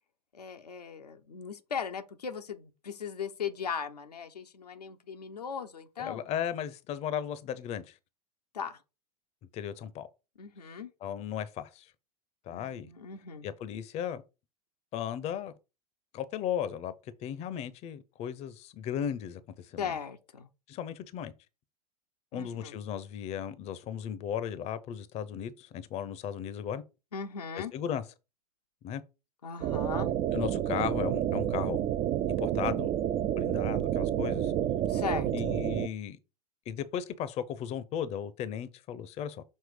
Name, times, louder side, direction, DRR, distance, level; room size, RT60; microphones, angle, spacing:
voice 1, 0.3-6.2 8.5-8.8 10.4-10.9 12.5-13.5 19.8-20.5 22.3-22.8 27.1-27.7 29.4-30.1 34.9-35.3, left 6 dB, 80° left, 0.8 m, -38 dB
voice 2, 6.0-8.0 9.5-10.1 11.0-11.9 12.5-12.9 13.4-14.2 14.9-15.5 16.1-16.9 17.2-20.0 20.7-21.3 22.3-26.8 27.6-28.0 28.8-29.0 30.3-31.8 32.4-32.9 33.4-34.5 35.3-36.2 36.7-39.4, left 9 dB, 35° left, 0.7 m, -36 dB
sound 1, 29.6-35.9, right 11 dB, 30° right, 0.4 m, -29 dB
6.5 x 3.1 x 4.9 m
figure-of-eight pair, 90°, 20 cm